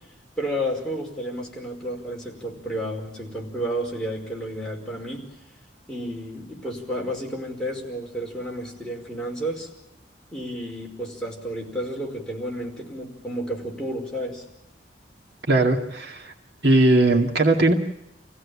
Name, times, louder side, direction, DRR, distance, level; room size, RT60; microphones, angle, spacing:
voice 1, 0.4-5.3 5.9-9.7 10.3-14.4, equal, 5° left, -2 dB, 5.2 m, -31 dB
voice 2, 15.5-16.3 16.6-17.7, right 2 dB, 65° right, 1 dB, 2.2 m, -19 dB
28.0 x 16.5 x 8.5 m, 0.85 s
head